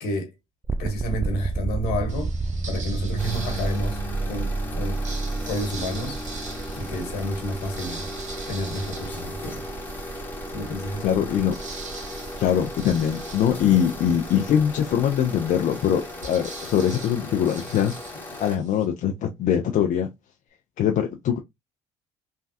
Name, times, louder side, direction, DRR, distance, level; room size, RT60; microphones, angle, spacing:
sound 1, 0.6-17.6, right 3 dB, 15° right, 0.3 m, -32 dB
voice 1, 0.8-2.3 2.7-4.0 4.2-5.0 5.5-6.2 6.7-8.1 8.5-9.6 10.5-11.3, equal, 70° left, 1.3 m, -30 dB
sound 2, 2.1-4.2 4.8-10.0 10.5-10.6 10.8-18.9, right 4 dB, 50° right, 1.3 m, -43 dB
sound 3, 3.2-18.6, left 2 dB, 10° left, 1.2 m, -39 dB
voice 2, 11.0-11.5 12.4-17.9 18.4-20.1 20.8-21.4, left 9 dB, 50° left, 0.5 m, -22 dB
3.2 x 2.2 x 2.7 m
hypercardioid pair, 65°, 16 cm